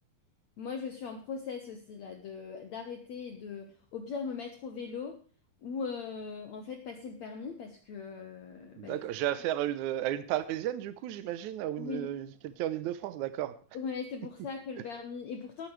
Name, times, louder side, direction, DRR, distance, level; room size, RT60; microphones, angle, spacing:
voice 1, 0.6-5.2 5.6-9.0 11.8-12.1 13.7-15.7, left 5 dB, 60° left, 5 dB, 2.1 m, -39 dB
voice 2, 8.8-13.5, right 12 dB, 75° right, 13 dB, 1.8 m, -33 dB
19.0 x 9.3 x 3.3 m, 0.40 s
omnidirectional pair, 4.4 m